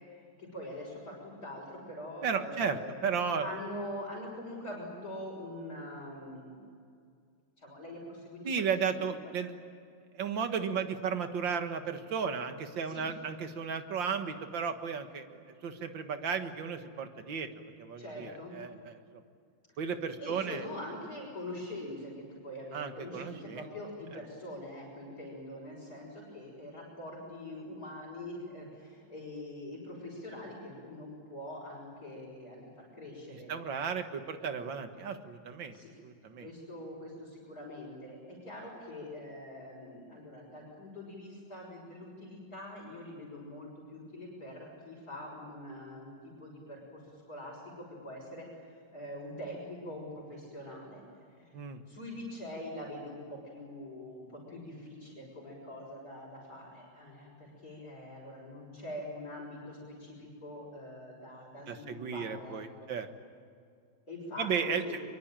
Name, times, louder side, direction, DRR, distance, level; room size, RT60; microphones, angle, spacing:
voice 1, 0.4-3.0 3.4-6.6 7.6-9.1 12.8-13.1 18.0-18.6 20.2-33.5 35.7-35.9 36.4-51.0 51.4-51.6 51.9-62.9 64.1-65.0, left 1 dB, 50° left, -6 dB, 6.7 m, -44 dB
voice 2, 2.2-3.5 8.4-9.5 10.1-17.5 17.8-19.2 19.8-20.7 22.7-23.7 33.5-35.8 36.0-36.5 51.5-51.8 61.7-63.1 64.4-64.9, right 6 dB, 75° right, 7 dB, 2.3 m, -34 dB
24.0 x 24.0 x 9.0 m, 2.3 s
omnidirectional pair, 2.1 m